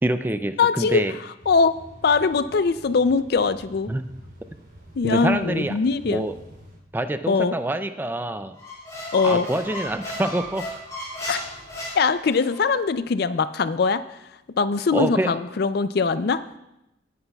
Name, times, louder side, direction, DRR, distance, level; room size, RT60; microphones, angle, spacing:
voice 1, 0.0-1.1 3.9-4.1 5.0-5.7 6.0-6.3 6.9-8.6 9.2-10.7 14.9-15.3, right 1 dB, 10° right, 10 dB, 0.3 m, -26 dB
voice 2, 0.6-1.0 1.5-1.7 2.0-3.9 5.0-6.2 7.3-7.5 9.1-9.5 11.3-11.4 12.0-14.0 14.6-16.4, left 4 dB, 55° left, 13 dB, 0.4 m, -21 dB
sound 1, 1.4-6.8, equal, 45° right, 3.7 m, -47 dB
Squeak, 8.6-12.6, left 1 dB, 20° left, 3.9 m, -34 dB
17.5 x 9.7 x 2.3 m, 0.90 s
head